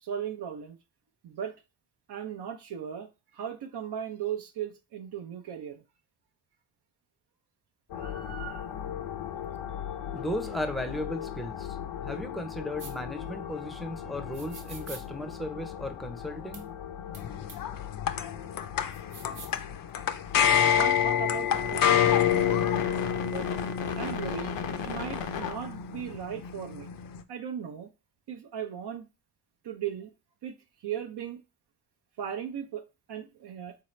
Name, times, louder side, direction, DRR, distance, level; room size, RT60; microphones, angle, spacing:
voice 1, 0.0-0.8 1.2-1.5 2.1-5.8 7.9-8.7 20.7-22.6 23.2-23.5 24.0-26.9 27.3-27.9 28.3-29.0 29.6-30.1 30.4-30.5 30.8-31.4 32.2-32.8 33.1-33.8, right 9 dB, 65° right, 0.6 m, -37 dB
sound 1, 7.9-26.0, left 8 dB, 85° left, 0.7 m, -38 dB
voice 2, 10.1-16.7, left 1 dB, ahead, 0.6 m, -36 dB
sound 2, 12.8-12.9 14.3-15.0 16.5-16.6 17.1-17.2 17.5-17.6 18.9-19.6, right 4 dB, 45° right, 1.0 m, -45 dB
sound 3, 17.1-27.2, left 9 dB, 50° left, 0.5 m, -27 dB
3.9 x 2.8 x 3.1 m
cardioid pair, 75°, 43 cm